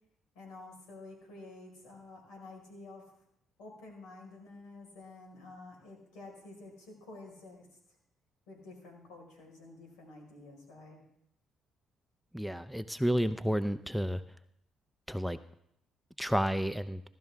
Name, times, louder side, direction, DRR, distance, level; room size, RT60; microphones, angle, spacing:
voice 1, 0.3-3.1 3.6-7.7 8.5-11.0, left 2 dB, 85° left, 0 dB, 4.9 m, -50 dB
voice 2, 12.3-14.2 15.1-15.4 16.2-17.0, equal, ahead, 11 dB, 0.6 m, -31 dB
16.5 x 12.5 x 3.6 m, 0.76 s
supercardioid pair, 70°, 0 cm